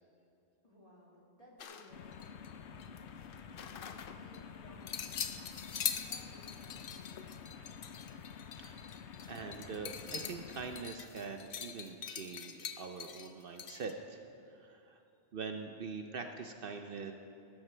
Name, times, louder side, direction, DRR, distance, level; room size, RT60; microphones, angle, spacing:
voice 1, 0.6-3.1 3.6-5.6 5.9-7.9, left 1 dB, 35° left, -4 dB, 2.4 m, -60 dB
sound 1, 1.6-2.5 2.8-4.4 4.9-13.9, left 8 dB, 60° left, 0.8 m, -43 dB
sound 2, 1.9-10.8, left 7 dB, 85° left, 1.0 m, -49 dB
voice 2, 9.3-14.2 14.5-15.0 15.3-17.1, right 5 dB, 60° right, 5 dB, 0.8 m, -43 dB
17.5 x 13.5 x 3.3 m, 2.6 s
omnidirectional pair, 1.1 m